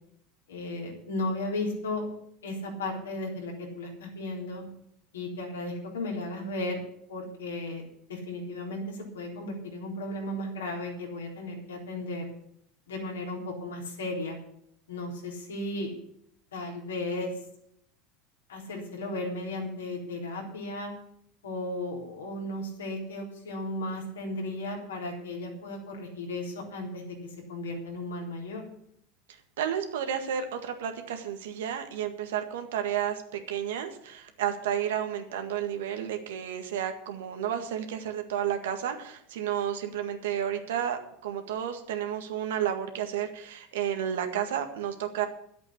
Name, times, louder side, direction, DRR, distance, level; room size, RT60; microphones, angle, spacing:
voice 1, 0.5-2.1 2.4-4.7 5.1-6.8 7.1-12.3 12.9-14.4 14.9-15.9 16.5-17.3 18.5-20.9 21.4-28.6, left 2 dB, 80° left, 0 dB, 3.7 m, -35 dB
voice 2, 29.6-45.3, right 9 dB, 75° right, 6 dB, 1.8 m, -31 dB
11.0 x 8.2 x 8.7 m, 0.70 s
hypercardioid pair, 80°, 0 cm